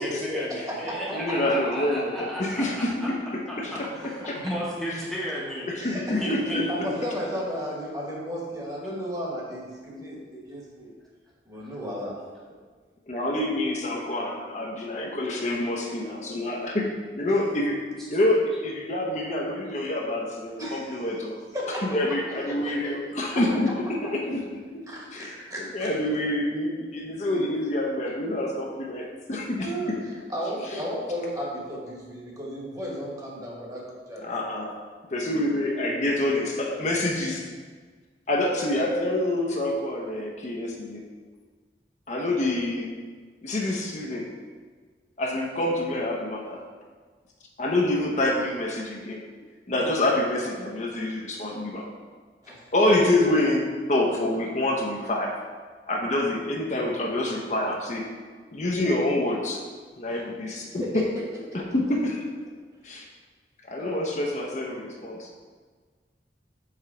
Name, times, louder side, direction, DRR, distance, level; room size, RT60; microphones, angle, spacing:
voice 1, 0.0-3.1 3.7-5.7 6.2-6.9, equal, ahead, -7 dB, 0.8 m, -33 dB
voice 2, 1.1-2.9 3.3-3.9 4.3-4.4 4.9-5.0 5.7-6.7 13.1-16.9 17.1-17.8 18.1-21.4 21.8-24.4 25.1-30.0 30.6-30.8 34.2-34.7 35.1-37.5 38.3-41.0 42.1-42.9 43.4-44.3 45.2-46.6 47.6-49.2 49.7-51.9 52.7-53.6 53.9-55.4 55.9-58.0 58.5-59.6 60.0-61.1 61.5-62.2 62.8-63.0 63.7-65.3, left 1 dB, 40° left, -1 dB, 0.6 m, -27 dB
voice 3, 5.8-6.2 6.8-10.2 10.5-10.9 11.5-12.2 17.3-17.4 20.6-21.0 21.5-21.8 22.4-22.7 23.3-23.4 24.9-25.9 27.3-27.4 29.6-29.9 30.3-33.8 34.1-34.2 52.4-52.6 60.8-61.0 63.8-64.0, equal, 20° right, -4 dB, 1.3 m, -34 dB
4.9 x 3.9 x 5.7 m, 1.5 s
head